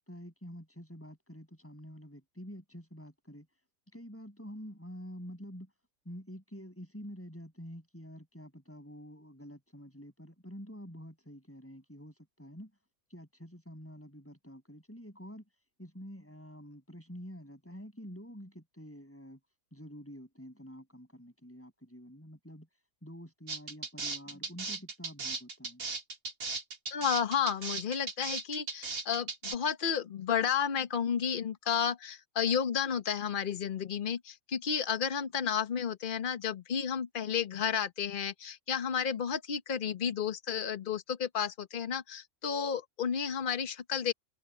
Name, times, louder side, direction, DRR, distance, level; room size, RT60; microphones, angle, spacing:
voice 1, 0.0-3.5 3.9-5.7 6.1-12.7 13.1-15.4 15.8-19.4 19.7-22.7 23.0-25.8, equal, 10° left, 7.2 m, -48 dB
sound 1, 23.5-29.6, right 4 dB, 80° right, 2.8 m, -37 dB
voice 2, 26.9-44.1, left 7 dB, 40° left, 1.1 m, -32 dB
omnidirectional pair, 1.4 m